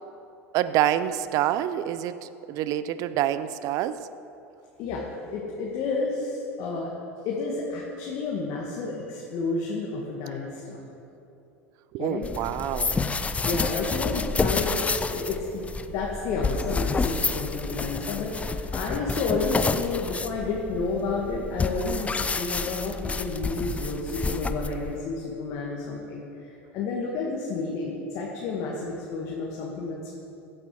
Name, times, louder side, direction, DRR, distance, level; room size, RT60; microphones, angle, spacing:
voice 1, 0.5-4.0 11.9-13.0, right 12 dB, 55° right, 14 dB, 0.6 m, -27 dB
voice 2, 4.8-6.9 7.3-10.8 12.0-12.4 13.4-30.1, left 3 dB, 55° left, -3 dB, 2.0 m, -31 dB
sound 1, 12.2-25.0, left 4 dB, 20° left, 0.6 m, -29 dB
15.0 x 8.7 x 4.9 m, 2.8 s
hypercardioid pair, 80°, 7 cm